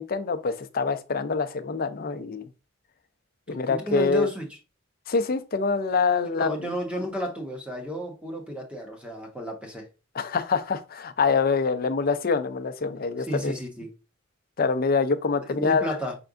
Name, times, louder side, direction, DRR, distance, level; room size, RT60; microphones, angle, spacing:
voice 1, 0.0-2.5 3.5-4.3 5.1-6.7 10.1-13.5 14.6-16.0, left 4 dB, 50° left, 0.5 m, -25 dB
voice 2, 3.7-4.5 6.3-9.9 13.2-13.9 15.5-16.1, equal, 5° right, 1.2 m, -32 dB
5.9 x 3.4 x 2.5 m
head